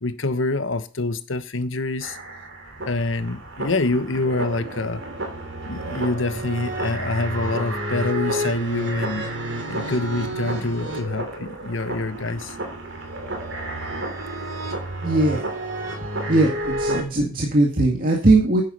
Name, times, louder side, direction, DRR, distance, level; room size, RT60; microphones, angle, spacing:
voice 1, 0.0-2.2 2.9-5.0 5.7-9.3 9.7-12.6, left 2 dB, 85° left, 11 dB, 1.2 m, -26 dB
sound 1, 2.0-17.0, right 1 dB, 80° right, 3.2 m, -30 dB
voice 2, 15.0-15.5 16.3-18.6, right 2 dB, 45° right, -1 dB, 2.0 m, -19 dB
10.5 x 8.1 x 5.5 m, 0.37 s
head